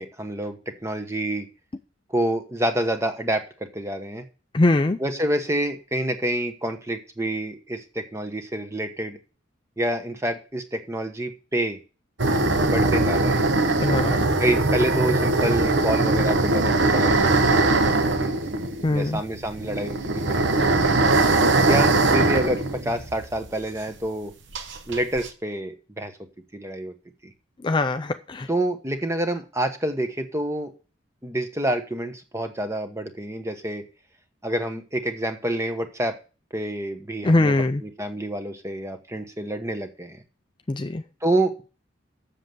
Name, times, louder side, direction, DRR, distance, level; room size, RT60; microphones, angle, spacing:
voice 1, 0.0-1.5 2.1-4.2 5.0-9.2 9.8-11.8 12.6-13.5 14.4-17.9 18.2-18.3 18.9-20.9 21.6-24.3 24.9-26.1 26.5-26.9 28.5-30.7 31.2-33.8 34.4-36.2 36.5-40.2 41.2-41.6, right 1 dB, 15° right, 7 dB, 1.1 m, -28 dB
voice 2, 4.5-5.0 13.7-14.3 18.8-19.2 27.6-28.5 37.2-37.8 40.7-41.0, left 2 dB, 25° left, 9 dB, 0.4 m, -22 dB
sound 1, 12.2-23.6 23.9-24.0 24.5-25.3, right 2 dB, 65° right, 1.1 m, -21 dB
7.5 x 6.8 x 7.6 m, 0.35 s
head